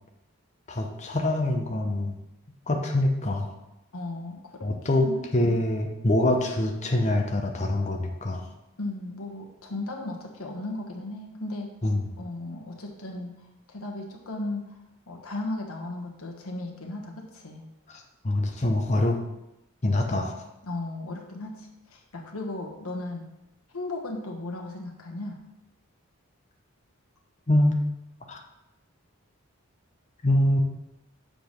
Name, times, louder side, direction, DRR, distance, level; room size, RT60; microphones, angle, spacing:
voice 1, 0.7-2.1 2.7-3.5 4.6-8.5 11.8-12.0 17.9-19.2 19.8-20.3 27.5-27.8 28.3-28.4 30.2-30.6, left 1 dB, 30° left, 2 dB, 0.7 m, -25 dB
voice 2, 3.9-5.6 8.8-11.7 12.2-13.3 13.7-17.7 20.6-23.2 23.7-25.4, left 2 dB, 80° left, 1 dB, 1.4 m, -36 dB
6.9 x 3.9 x 6.5 m, 0.90 s
head